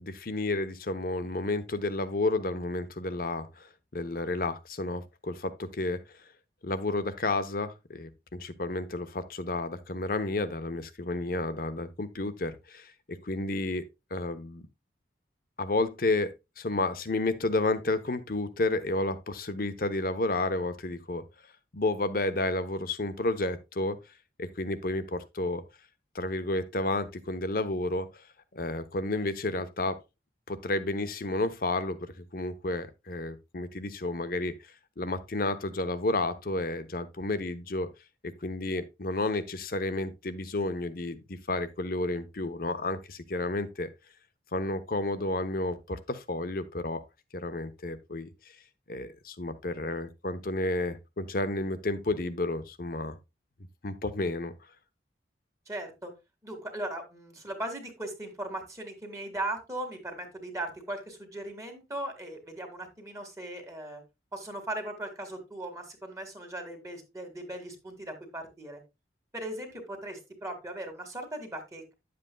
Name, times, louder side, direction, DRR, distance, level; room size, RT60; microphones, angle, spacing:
voice 1, 0.0-6.0 6.6-13.8 14.1-14.6 15.6-21.2 21.7-24.0 24.4-25.6 26.1-28.2 28.5-30.0 30.5-34.6 35.0-37.9 38.2-43.9 44.5-47.0 47.3-48.3 48.9-53.2 53.8-54.5, left 2 dB, 55° left, 0.9 m, -31 dB
voice 2, 55.7-56.1 56.4-64.0 64.3-68.8 69.3-71.9, right 1 dB, 20° right, 1.9 m, -38 dB
10.5 x 7.7 x 2.3 m
head